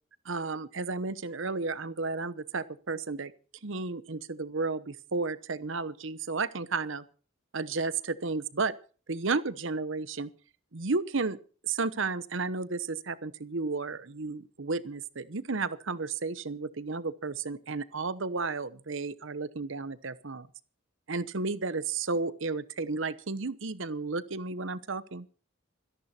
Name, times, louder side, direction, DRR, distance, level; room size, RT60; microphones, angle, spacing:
voice 1, 0.2-3.3 3.6-7.0 7.5-8.7 9.1-10.3 10.7-11.4 11.6-20.5 21.1-25.3, right 3 dB, 65° right, 15 dB, 0.9 m, -33 dB
25.5 x 11.0 x 4.3 m, 0.38 s
head